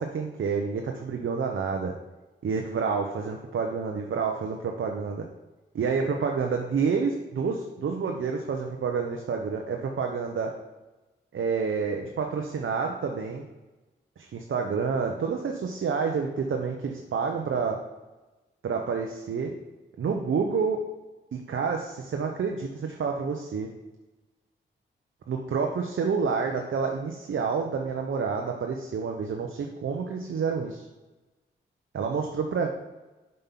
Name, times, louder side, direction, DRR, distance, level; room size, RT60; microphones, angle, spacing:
voice 1, 0.0-1.9 2.4-5.2 5.7-10.5 11.3-13.5 14.2-17.8 18.6-19.5 20.0-20.8 21.3-23.7 25.3-30.9 31.9-32.7, right 5 dB, 70° right, 2 dB, 0.8 m, -29 dB
5.6 x 5.4 x 5.7 m, 1.1 s
cardioid pair, 45°, 21 cm